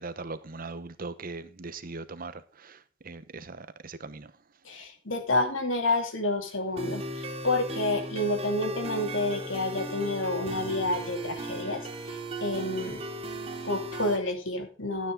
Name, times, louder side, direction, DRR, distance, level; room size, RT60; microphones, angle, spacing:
voice 1, 0.0-4.3, right 3 dB, 50° right, 1.0 m, -40 dB
voice 2, 4.6-13.0 13.6-15.1, left 2 dB, 90° left, 2.8 m, -29 dB
sound 1, 6.8-14.2, right 1 dB, 30° right, 2.4 m, -36 dB
12.5 x 9.4 x 3.8 m
head